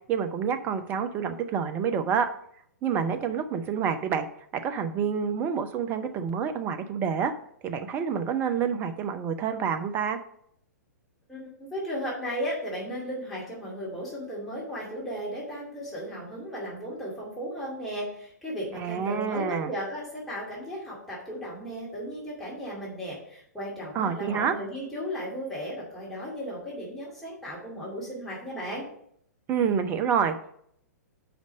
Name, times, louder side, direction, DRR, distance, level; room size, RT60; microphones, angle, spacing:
voice 1, 0.1-2.3 2.8-4.3 4.6-7.3 7.6-10.2 18.7-19.7 23.9-24.6 29.5-30.5, right 7 dB, 20° right, 8 dB, 0.6 m, -28 dB
voice 2, 11.3-28.9, equal, 5° left, -8 dB, 2.4 m, -35 dB
5.2 x 5.1 x 6.2 m, 0.68 s
figure-of-eight pair, 110°, 9 cm